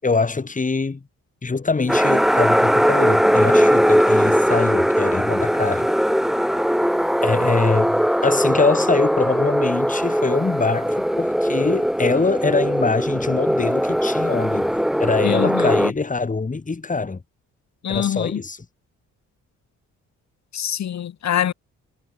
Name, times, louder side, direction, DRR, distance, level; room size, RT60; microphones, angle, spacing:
voice 1, 0.0-1.0 1.4-5.9 7.2-17.2 17.9-18.6, left 4 dB, 25° left, 6.1 m, -23 dB
sound 1, 1.9-15.9, equal, ahead, 3.2 m, -20 dB
voice 2, 15.2-15.7 17.8-18.4 20.5-21.5, left 10 dB, 65° left, 7.0 m, -24 dB
cardioid pair, 90°, 30 cm